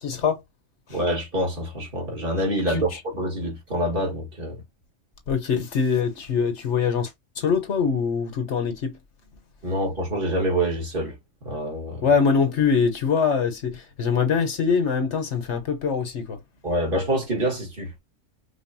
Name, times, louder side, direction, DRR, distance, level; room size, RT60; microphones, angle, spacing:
voice 1, 0.0-0.4 2.7-2.8 5.3-7.1 7.4-9.0 12.0-16.4, left 6 dB, 65° left, 1.2 m, -23 dB
voice 2, 0.9-4.6 9.6-11.2 11.4-12.0 16.6-18.0, right 1 dB, 45° right, 1.8 m, -26 dB
5.3 x 2.3 x 2.6 m
omnidirectional pair, 1.3 m